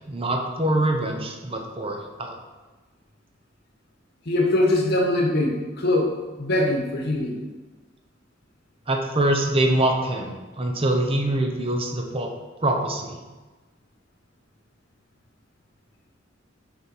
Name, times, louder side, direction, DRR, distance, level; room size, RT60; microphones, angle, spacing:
voice 1, 0.1-2.3 8.9-12.3 12.6-13.2, right 1 dB, 30° right, 3 dB, 0.8 m, -24 dB
voice 2, 4.2-7.4, left 1 dB, 60° left, 0 dB, 1.3 m, -22 dB
6.6 x 4.4 x 4.6 m, 1.2 s
head